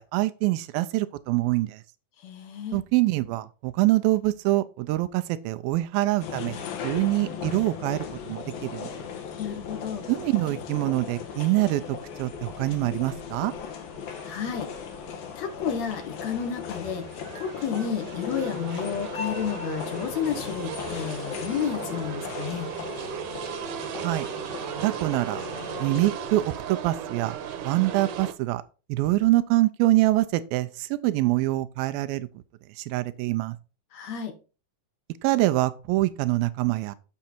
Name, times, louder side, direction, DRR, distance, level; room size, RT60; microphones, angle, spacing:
voice 1, 0.0-1.8 2.7-8.9 10.1-13.5 24.0-24.3 24.8-25.4 25.8-27.4 27.6-28.6 28.9-32.3 32.8-33.6 35.2-37.0, right 17 dB, 90° right, 2.4 m, -25 dB
voice 2, 2.2-2.8 9.4-10.1 14.2-14.7 15.4-17.1 17.4-22.7 33.9-34.4, left 7 dB, 65° left, 1.9 m, -31 dB
sound 1, 6.2-26.1, left 7 dB, 85° left, 3.1 m, -37 dB
sound 2, 12.3-28.3, right 8 dB, 70° right, 2.1 m, -38 dB
7.3 x 6.6 x 4.4 m
omnidirectional pair, 4.1 m